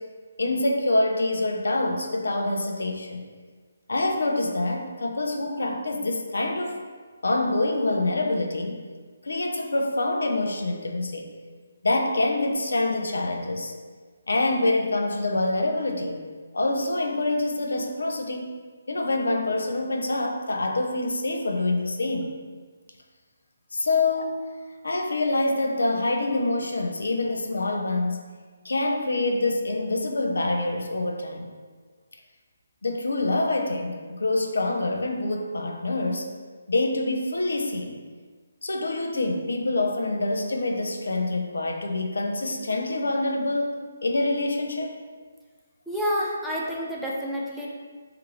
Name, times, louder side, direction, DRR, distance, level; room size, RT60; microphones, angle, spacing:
voice 1, 0.4-3.3 3.9-6.8 7.2-8.9 9.2-11.3 11.8-13.7 14.3-16.2 16.5-18.5 18.9-22.3 23.7-24.5 24.8-28.3 28.6-31.5 32.8-36.3 36.7-38.0 38.6-44.9, left 2 dB, 70° left, 3 dB, 0.4 m, -26 dB
voice 2, 45.9-47.7, equal, ahead, -7 dB, 0.4 m, -28 dB
2.7 x 2.5 x 3.7 m, 1.5 s
figure-of-eight pair, 145°, 0 cm